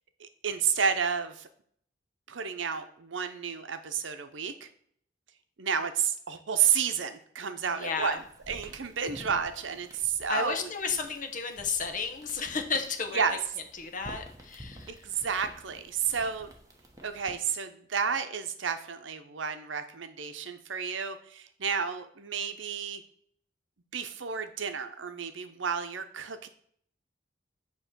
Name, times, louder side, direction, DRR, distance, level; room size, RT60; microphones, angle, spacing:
voice 1, 0.2-1.5 2.3-4.7 5.6-8.2 8.5-11.0 13.1-13.4 14.9-16.5 17.0-23.0 23.9-26.5, right 7 dB, 80° right, 9 dB, 0.7 m, -31 dB
voice 2, 7.7-8.2 10.3-13.4 13.7-15.1, left 5 dB, 45° left, 5 dB, 0.9 m, -33 dB
sound 1, 7.7-17.5, equal, 15° right, 1.0 m, -51 dB
7.9 x 3.1 x 6.1 m, 0.63 s
head